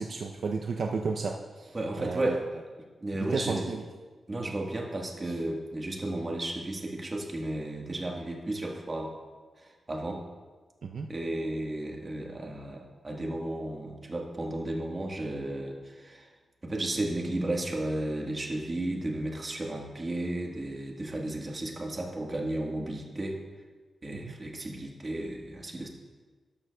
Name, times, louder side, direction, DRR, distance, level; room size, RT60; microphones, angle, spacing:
voice 1, 0.0-2.4 3.1-3.8 4.5-4.6 10.8-11.1 24.2-24.3, right 4 dB, 55° right, 2 dB, 0.5 m, -33 dB
voice 2, 1.7-2.5 3.0-3.7 4.3-9.2 9.6-10.2 11.1-16.3 16.6-23.4 24.0-25.9, right 1 dB, 25° right, 0 dB, 1.3 m, -33 dB
12.5 x 12.0 x 2.2 m, 1.4 s
wide cardioid pair, 165°, 0 cm